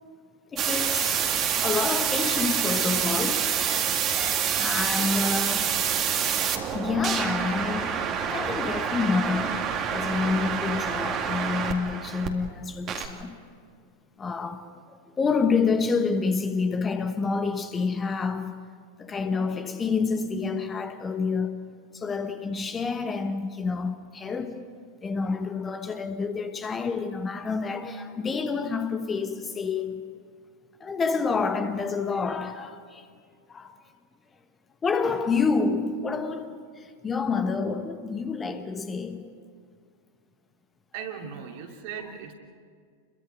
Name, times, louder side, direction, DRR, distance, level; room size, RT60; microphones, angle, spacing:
voice 1, 0.5-1.3 1.6-3.6 4.6-5.8 6.7-8.0 8.3-13.4 14.2-18.6 19.0-21.7 21.9-24.7 25.0-30.2 30.8-33.1 33.5-33.8 34.8-39.3, left 4 dB, 20° left, 1.2 m, -28 dB
sound 1, 0.6-12.3 12.9-13.1, right 8 dB, 30° right, 2.1 m, -27 dB
voice 2, 40.9-42.3, right 7 dB, 50° right, 2.7 m, -38 dB
29.0 x 22.5 x 5.3 m
figure-of-eight pair, 90°, 0 cm